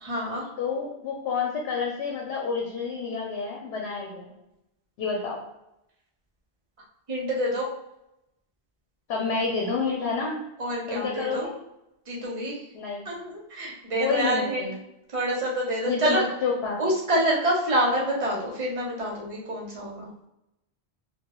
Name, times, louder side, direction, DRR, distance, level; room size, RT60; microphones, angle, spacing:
voice 1, 0.0-0.5 7.1-7.7 10.6-11.5 12.1-12.6 13.0-14.7 15.1-16.2 16.8-20.1, right 1 dB, 40° right, -3 dB, 0.7 m, -27 dB
voice 2, 0.6-4.3 5.0-5.4 9.1-10.4 10.9-11.5 12.7-13.0 14.0-14.7 15.9-16.8, left 5 dB, 80° left, -2 dB, 0.8 m, -28 dB
2.2 x 2.1 x 2.9 m, 0.87 s
omnidirectional pair, 1.1 m